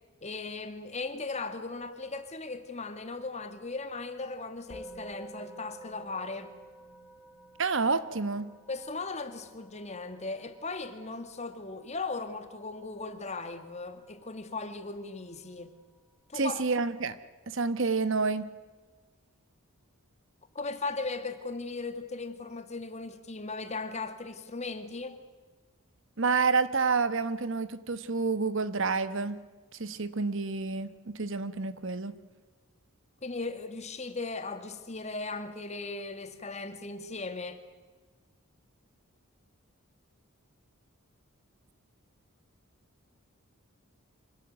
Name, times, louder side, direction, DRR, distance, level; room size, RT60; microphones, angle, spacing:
voice 1, 0.2-6.5 8.7-15.7 16.3-16.6 20.5-25.2 33.2-37.6, left 3 dB, 30° left, 2.0 m, -37 dB
Musical instrument, 4.7-14.2, right 2 dB, 10° left, 4.4 m, -51 dB
voice 2, 7.6-8.5 16.3-17.2 17.5-18.5 26.2-29.4 29.7-32.2, right 4 dB, 60° right, 1.2 m, -29 dB
25.5 x 18.0 x 9.4 m
head